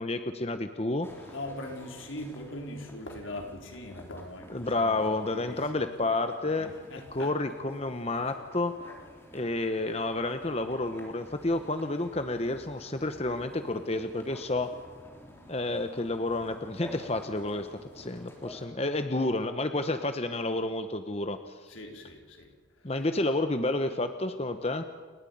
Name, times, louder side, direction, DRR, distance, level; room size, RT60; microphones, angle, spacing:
voice 1, 0.0-1.1 4.5-6.7 7.1-8.9 9.3-14.7 15.5-21.6 22.8-24.8, left 2 dB, 30° left, 1.0 m, -30 dB
sound 1, 1.0-18.7, left 1 dB, 10° left, 3.5 m, -50 dB
voice 2, 1.3-4.9 5.3-5.8 6.5-7.3 21.7-23.1, left 1 dB, 85° left, 4.0 m, -41 dB
30.0 x 12.5 x 9.5 m
head